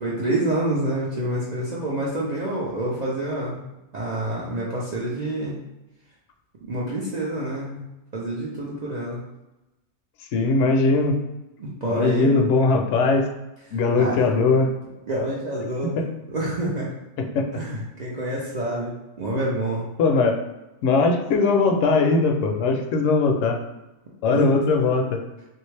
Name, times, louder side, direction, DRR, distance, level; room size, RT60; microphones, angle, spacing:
voice 1, 0.0-3.6 3.9-5.6 6.6-7.8 8.1-9.2 11.6-12.4 14.0-14.3 15.1-16.0 16.3-16.9 17.5-18.9 19.2-19.9 24.3-24.5, right 1 dB, 65° right, -5 dB, 0.4 m, -27 dB
voice 2, 10.3-11.2 11.9-13.3 13.7-14.8 15.8-16.1 17.2-17.4 20.0-20.4 20.8-23.6 24.2-25.2, left 3 dB, 65° left, 3 dB, 0.8 m, -20 dB
3.4 x 2.6 x 3.2 m, 0.99 s
omnidirectional pair, 1.5 m